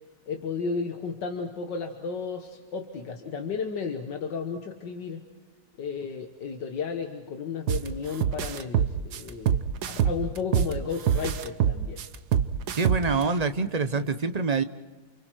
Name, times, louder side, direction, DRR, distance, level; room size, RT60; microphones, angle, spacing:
voice 1, 0.3-5.2 5.8-9.6 9.9-12.0 14.0-14.1, left 5 dB, 85° left, 4 dB, 1.9 m, -33 dB
sound 1, 7.7-7.9 8.2-10.7 11.1-13.2, right 9 dB, 70° right, 1.5 m, -24 dB
voice 2, 12.7-14.6, right 4 dB, 40° right, 10 dB, 0.5 m, -26 dB
29.5 x 29.0 x 4.6 m, 1.3 s
omnidirectional pair, 1.9 m